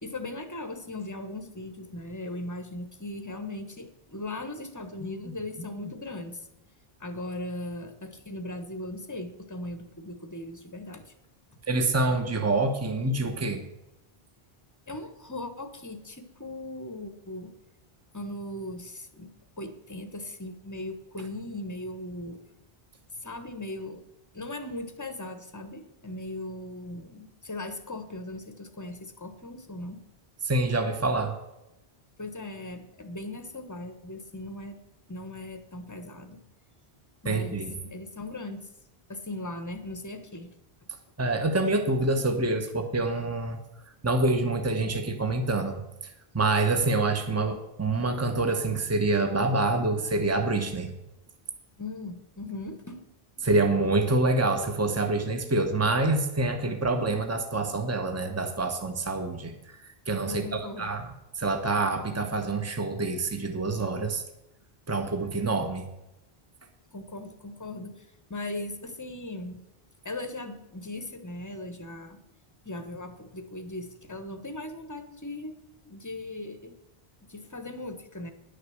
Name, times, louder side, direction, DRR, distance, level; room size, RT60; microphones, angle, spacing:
voice 1, 0.0-6.4 7.0-11.1 14.9-17.5 18.1-19.3 19.6-22.4 23.1-24.0 24.3-30.0 32.2-34.8 35.1-36.4 37.2-38.7 39.1-40.6 51.8-53.1 53.4-53.5 60.3-60.9 66.9-69.6 70.0-72.2 72.6-75.5 75.8-76.7 77.3-78.3, left 1 dB, 20° left, 8 dB, 1.1 m, -38 dB
voice 2, 11.7-13.6 30.4-31.3 37.2-37.7 41.2-43.6 44.0-45.8 46.3-50.9 53.4-59.5 60.1-61.0 61.3-64.2 64.9-65.9, right 2 dB, 15° right, 5 dB, 1.1 m, -26 dB
10.5 x 6.6 x 7.7 m, 0.93 s
omnidirectional pair, 1.0 m